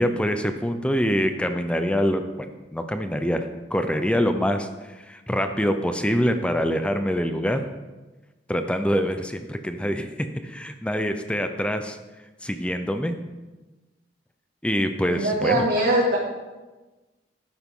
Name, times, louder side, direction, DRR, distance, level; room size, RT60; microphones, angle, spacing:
voice 1, 0.0-7.6 8.5-12.0 12.4-13.2 14.6-15.7, equal, 5° left, 7 dB, 0.6 m, -25 dB
voice 2, 15.1-16.2, right 1 dB, 60° right, -5 dB, 2.1 m, -21 dB
12.0 x 9.9 x 3.8 m, 1.2 s
head